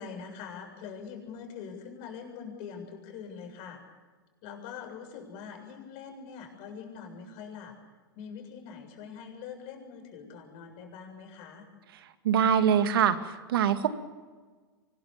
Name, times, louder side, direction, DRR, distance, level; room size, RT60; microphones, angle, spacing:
voice 1, 0.0-3.8 4.4-7.7 8.1-11.7, left 6 dB, 50° left, 4 dB, 7.3 m, -43 dB
voice 2, 12.2-13.9, right 8 dB, 75° right, 9 dB, 2.2 m, -24 dB
24.5 x 21.0 x 7.2 m, 1.4 s
hypercardioid pair, 100°, 12 cm